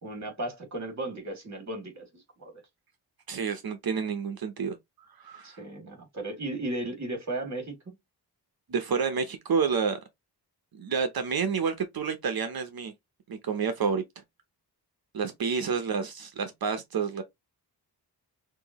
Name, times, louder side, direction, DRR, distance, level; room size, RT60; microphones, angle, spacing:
voice 1, 0.0-2.5 5.4-8.0, right 1 dB, 40° right, 2.6 m, -35 dB
voice 2, 3.3-4.8 5.2-5.6 8.7-10.0 10.7-12.9 13.3-14.0 15.1-17.2, right 6 dB, 60° right, 0.8 m, -29 dB
6.0 x 2.7 x 3.0 m
wide cardioid pair, 120°, 41 cm